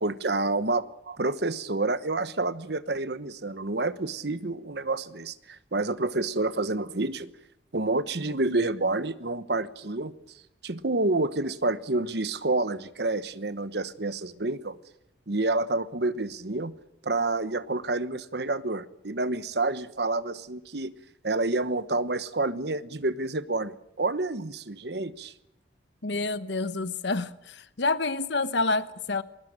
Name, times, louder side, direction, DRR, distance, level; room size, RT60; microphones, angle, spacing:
voice 1, 0.0-7.3 7.7-10.1 10.6-14.8 15.3-16.7 17.0-21.0 21.2-25.3, right 2 dB, 60° right, 1.1 m, -28 dB
voice 2, 26.0-29.2, left 3 dB, 70° left, 1.1 m, -28 dB
20.5 x 20.0 x 8.9 m
head